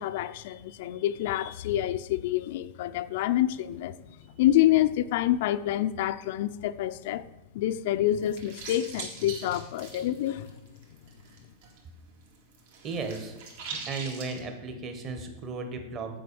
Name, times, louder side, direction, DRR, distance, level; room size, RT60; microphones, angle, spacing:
voice 1, 0.0-4.0 4.4-7.3 7.5-10.5, left 13 dB, 60° left, 0.4 m, -27 dB
sound 1, 8.1-11.8 12.1-14.4, right 4 dB, 65° right, 2.3 m, -42 dB
voice 2, 12.8-13.3 13.7-16.2, right 4 dB, 30° right, 1.3 m, -35 dB
7.7 x 5.1 x 6.9 m
supercardioid pair, 150°, 0 cm